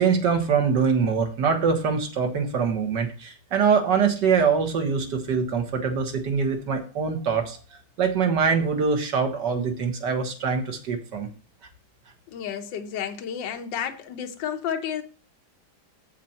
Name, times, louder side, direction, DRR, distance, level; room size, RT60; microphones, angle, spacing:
voice 1, 0.0-7.6 8.0-11.3, right 6 dB, 60° right, 2.1 m, -23 dB
voice 2, 12.3-15.0, left 8 dB, 70° left, 1.6 m, -31 dB
7.4 x 7.2 x 4.4 m
omnidirectional pair, 2.2 m